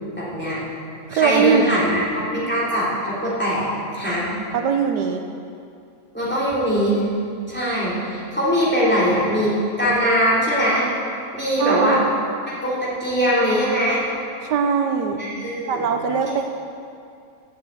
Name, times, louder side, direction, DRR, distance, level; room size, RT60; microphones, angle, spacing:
voice 1, 0.2-0.6 1.1-3.7 3.9-4.3 6.1-7.0 7.5-10.9 11.3-12.0 12.5-14.0 15.2-15.9, equal, 5° left, -8 dB, 3.3 m, -21 dB
voice 2, 1.1-1.8 4.5-5.2 11.6-12.2 14.4-15.2 15.7-16.4, right 6 dB, 80° right, 5 dB, 1.3 m, -21 dB
9.2 x 7.7 x 8.4 m, 2.4 s
omnidirectional pair, 1.8 m